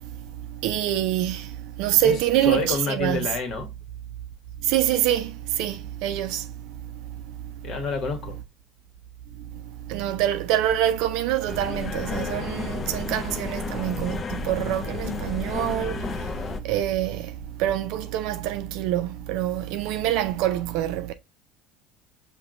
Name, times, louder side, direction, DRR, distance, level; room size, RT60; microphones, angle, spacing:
voice 1, 0.6-3.3 4.6-6.5 9.9-16.1 16.6-17.3 17.6-21.1, right 12 dB, 70° right, 0.5 m, -25 dB
voice 2, 2.0-3.7 7.6-8.3, left 4 dB, 50° left, 1.2 m, -29 dB
sound 1, 11.5-16.6, left 5 dB, 35° left, 0.5 m, -32 dB
5.7 x 2.2 x 2.5 m
hypercardioid pair, 70°, 0 cm